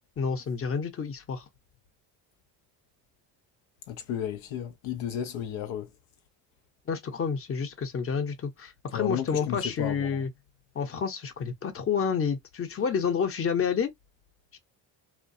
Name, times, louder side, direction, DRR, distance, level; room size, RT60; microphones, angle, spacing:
voice 1, 0.2-1.4 6.9-10.3 10.7-13.9 14.5-14.6, left 6 dB, 30° left, 0.8 m, -29 dB
voice 2, 3.9-5.9 8.9-10.2, left 9 dB, 75° left, 0.7 m, -33 dB
2.3 x 2.2 x 2.5 m
supercardioid pair, 70°, 48 cm